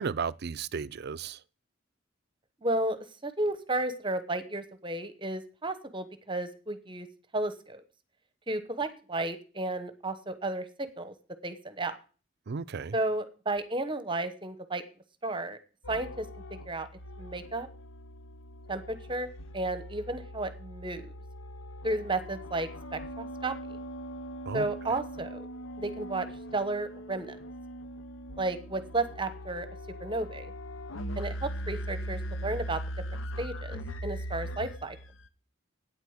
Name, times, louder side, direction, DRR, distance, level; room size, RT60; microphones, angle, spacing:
voice 1, 0.0-1.4 12.5-12.9 24.5-24.7, right 5 dB, 55° right, 0.5 m, -34 dB
voice 2, 2.6-7.1 7.3-7.8 8.5-11.1 11.4-11.9 12.9-14.8 15.2-15.6 15.9-16.2 16.5-16.9 17.2-17.7 18.7-19.3 19.5-21.1 21.8-23.5 24.5-25.5 25.8-26.3 26.5-27.4 28.4-29.7 30.0-30.5 31.2-32.8 33.4-35.0, right 2 dB, 25° right, 1.0 m, -33 dB
sound 1, 15.8-35.3, equal, 75° left, 0.9 m, -40 dB
9.1 x 8.2 x 8.0 m
head